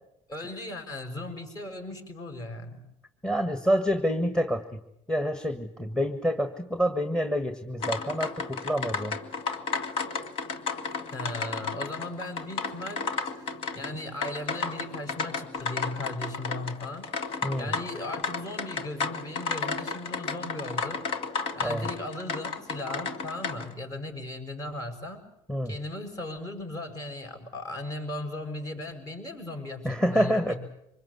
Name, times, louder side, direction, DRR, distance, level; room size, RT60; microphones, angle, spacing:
voice 1, 0.3-2.8 11.1-13.1 13.7-17.1 17.6-21.1 21.5-25.3 25.6-30.6, left 2 dB, 35° left, 5 dB, 6.0 m, -37 dB
voice 2, 3.2-4.8 5.1-9.2 17.4-17.7 21.6-21.9 25.5-25.8 29.8-30.5, equal, 10° left, 8 dB, 1.7 m, -27 dB
sound 1, 7.8-23.7, left 4 dB, 55° left, 1.9 m, -33 dB
25.0 x 21.0 x 8.1 m, 0.79 s
cardioid pair, 110°, 11 cm